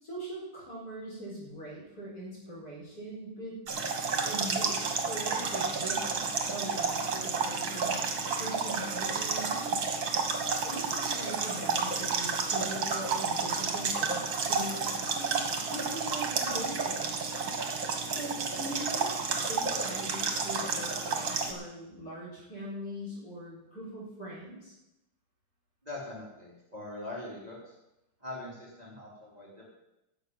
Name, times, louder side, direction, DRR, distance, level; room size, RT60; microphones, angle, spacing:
voice 1, 0.0-3.6 4.2-6.2 6.5-8.1 8.3-10.0 10.6-15.4 15.7-17.2 18.1-24.7, right 1 dB, 45° left, -4 dB, 4.9 m, -41 dB
sound 1, 3.7-21.5, right 4 dB, 60° right, 2.4 m, -31 dB
voice 2, 25.8-27.7 28.2-29.7, left 2 dB, 15° right, -4 dB, 3.3 m, -42 dB
11.5 x 7.0 x 9.4 m, 0.91 s
omnidirectional pair, 2.4 m